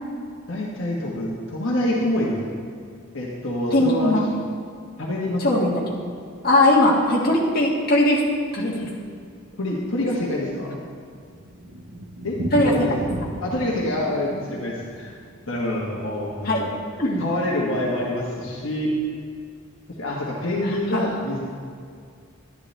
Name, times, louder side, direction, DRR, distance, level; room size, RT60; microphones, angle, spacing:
voice 1, 0.5-2.4 3.1-4.2 5.0-5.4 9.6-10.8 12.2-12.4 12.6-12.9 13.4-15.1 15.5-16.7 17.2-18.9 20.0-21.4, left 1 dB, 65° left, -4 dB, 1.3 m, -26 dB
voice 2, 3.7-4.3 5.4-6.0 6.4-8.2 8.5-8.9 12.5-12.7 13.6-13.7 16.4-16.6 17.0-17.3 20.6-21.1, left 1 dB, 45° left, -3 dB, 1.7 m, -20 dB
Thunder, 10.8-16.8 17.0-17.1 17.4-17.5 17.7-17.8 18.4-18.7, right 1 dB, 85° right, 0.9 m, -35 dB
11.5 x 10.5 x 3.3 m, 2.2 s
head